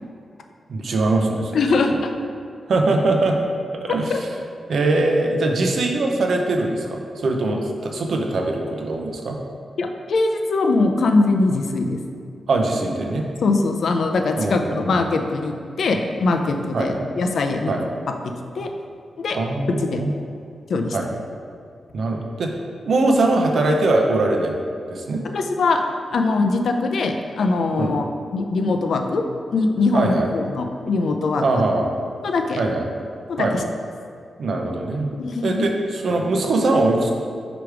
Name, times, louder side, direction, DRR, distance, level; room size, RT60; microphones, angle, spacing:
voice 1, 0.7-2.0 2.7-3.4 3.8-4.3 4.7-9.4 12.5-13.3 14.4-14.9 16.7-17.0 17.7-17.8 19.3-20.1 20.9-21.1 21.9-22.5 22.8-24.6 24.9-25.2 27.8-27.9 29.9-30.3 31.4-31.9 32.6-32.9 33.4-33.5 34.4-35.1 35.4-37.1, right 2 dB, 60° right, 2 dB, 0.7 m, -21 dB
voice 2, 1.5-2.1 4.1-4.2 9.8-12.0 13.4-17.7 18.6-18.7 19.2-19.4 19.8-20.0 20.7-21.0 25.3-25.8 26.1-28.0 28.3-29.2 29.5-31.6 32.2-32.6 33.3-33.6 35.1-35.6, left 3 dB, 65° left, 4 dB, 0.5 m, -21 dB
5.1 x 4.9 x 4.6 m, 2.4 s
wide cardioid pair, 165°, 0 cm